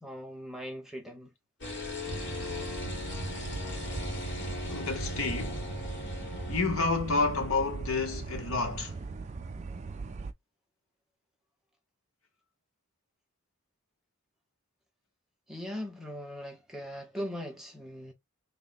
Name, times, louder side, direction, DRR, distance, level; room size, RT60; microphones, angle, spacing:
voice 1, 0.0-1.3 15.5-18.1, equal, ahead, 0.7 m, -40 dB
sound 1, 1.6-6.6, left 2 dB, 55° left, 2.4 m, -38 dB
sound 2, 2.1-10.3, right 4 dB, 30° right, 0.3 m, -39 dB
voice 2, 4.7-5.7 6.5-9.0, left 3 dB, 75° left, 1.1 m, -30 dB
3.5 x 2.2 x 3.9 m
head